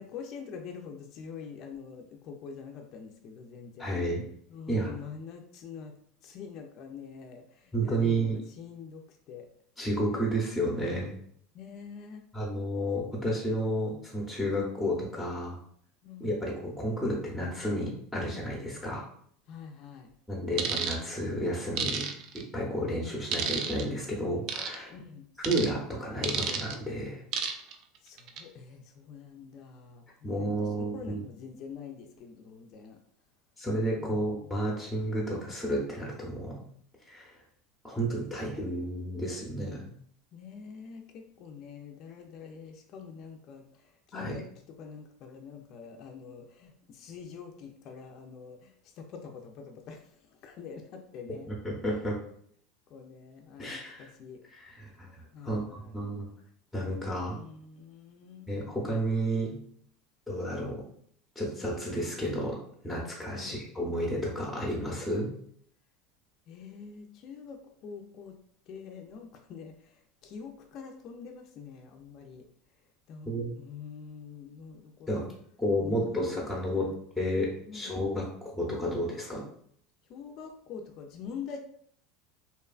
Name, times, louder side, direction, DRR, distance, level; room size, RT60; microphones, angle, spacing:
voice 1, 0.0-4.0 4.5-6.0 6.2-9.5 11.5-12.2 16.0-16.3 19.5-20.1 24.9-25.3 28.0-33.0 34.0-34.5 40.3-44.4 44.8-51.5 52.9-54.4 55.3-56.0 57.3-58.5 63.3-63.6 66.5-68.4 68.7-72.5 72.7-72.8 73.1-75.3 75.8-77.0 77.6-77.9 80.1-81.6, left 6 dB, 50° left, 3 dB, 0.3 m, -45 dB
voice 2, 3.8-4.2 4.7-4.9 7.7-8.4 9.8-11.2 12.3-15.6 16.2-19.0 20.3-24.9 25.4-27.2 30.2-31.2 33.6-36.6 37.0-37.4 37.8-39.9 44.1-44.4 51.5-52.2 53.6-54.1 54.5-56.3 56.7-57.4 58.5-59.6 60.3-60.9 61.4-65.3 73.3-73.5 75.1-75.3 75.6-76.9 77.2-78.3 78.5-79.5, equal, 5° left, -3 dB, 0.6 m, -31 dB
sound 1, 20.6-21.0 21.8-22.4 23.3-23.8 24.5-24.8 25.4-25.7 26.2-26.7 27.3-27.7 28.2-28.4, right 7 dB, 55° right, 0.3 m, -31 dB
2.8 x 2.2 x 2.3 m, 0.64 s
supercardioid pair, 125°, 0 cm